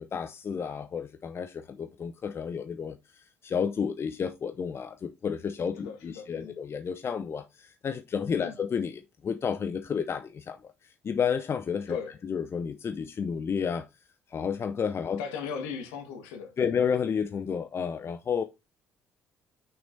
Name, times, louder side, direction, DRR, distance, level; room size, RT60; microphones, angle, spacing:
voice 1, 0.0-12.0 12.2-13.9 14.3-15.2 16.6-18.4, left 6 dB, 35° left, 0.7 m, -31 dB
voice 2, 5.7-6.6 8.3-8.6 11.9-12.1 15.2-16.7, left 6 dB, 65° left, 1.7 m, -38 dB
8.2 x 6.2 x 2.7 m
figure-of-eight pair, 45°, 7 cm